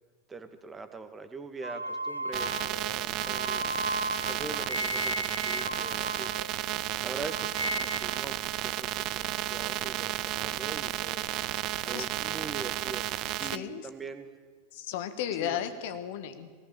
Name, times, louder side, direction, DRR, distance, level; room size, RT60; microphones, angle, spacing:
voice 1, 0.3-3.7 4.3-6.3 7.0-11.3 11.9-13.1 13.4-14.3 15.4-15.7, right 3 dB, 15° right, 8 dB, 1.9 m, -42 dB
sound 1, 1.6-6.9 7.2-8.3, right 1 dB, 85° right, 0.6 m, -35 dB
sound 2, 2.3-13.6, right 15 dB, 40° right, 0.6 m, -33 dB
voice 2, 13.5-13.9 14.7-16.6, left 10 dB, 50° left, 10 dB, 1.7 m, -34 dB
23.0 x 18.0 x 7.1 m, 1.5 s
figure-of-eight pair, 90°, 0 cm